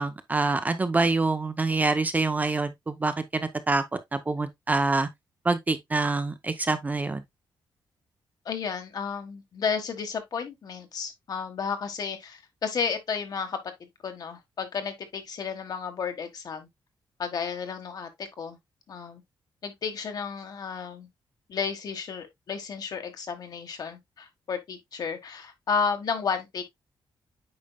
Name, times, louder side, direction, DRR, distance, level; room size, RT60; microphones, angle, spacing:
voice 1, 0.0-3.8 4.1-5.1 5.4-7.2, right 3 dB, 20° right, 0.6 m, -26 dB
voice 2, 8.4-13.6 14.0-16.7 17.2-18.6 18.9-19.2 19.6-21.1 21.5-26.6, left 6 dB, 50° left, 1.4 m, -32 dB
8.6 x 5.3 x 2.2 m
wide cardioid pair, 180°, 9 cm